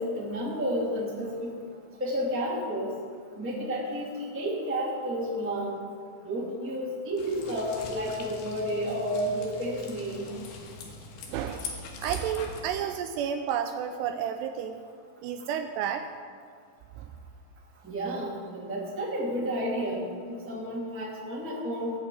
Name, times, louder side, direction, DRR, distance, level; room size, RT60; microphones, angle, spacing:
voice 1, 0.0-1.5 2.0-2.9 3.3-5.8 6.2-10.3 17.8-21.9, equal, 5° right, -5 dB, 1.2 m, -31 dB
sound 1, 7.2-12.6, left 5 dB, 70° left, 3.3 m, -43 dB
voice 2, 11.3-11.7 12.0-14.8 15.2-16.1 17.0-17.1, right 8 dB, 80° right, 7 dB, 2.5 m, -31 dB
15.5 x 5.9 x 8.5 m, 2.1 s
omnidirectional pair, 5.1 m